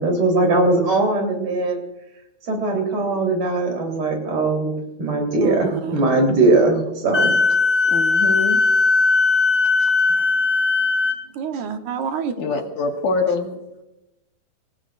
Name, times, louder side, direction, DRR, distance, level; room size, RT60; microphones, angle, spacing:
voice 1, 0.0-1.8 2.4-4.7 5.0-7.3, right 2 dB, 55° right, 1 dB, 4.8 m, -20 dB
voice 2, 5.4-6.1 9.8-9.9 11.3-12.6, right 6 dB, 75° right, 6 dB, 2.4 m, -28 dB
Wind instrument woodwind instrument, 7.1-11.2, left 3 dB, 15° left, 1.5 m, -18 dB
voice 3, 7.9-8.6 12.4-13.6, left 4 dB, 85° left, 2 dB, 3.3 m, -24 dB
29.0 x 16.0 x 2.5 m, 0.92 s
omnidirectional pair, 3.5 m